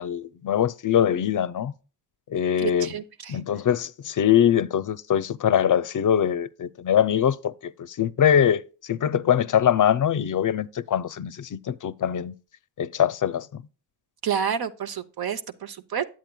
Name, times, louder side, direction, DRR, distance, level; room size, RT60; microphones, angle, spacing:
voice 1, 0.0-1.7 2.3-2.9 3.3-12.3 12.8-13.6, left 9 dB, 55° left, 0.5 m, -23 dB
voice 2, 2.6-3.4 14.2-16.0, right 8 dB, 65° right, 0.8 m, -29 dB
9.1 x 7.7 x 2.2 m
cardioid pair, 45°, 39 cm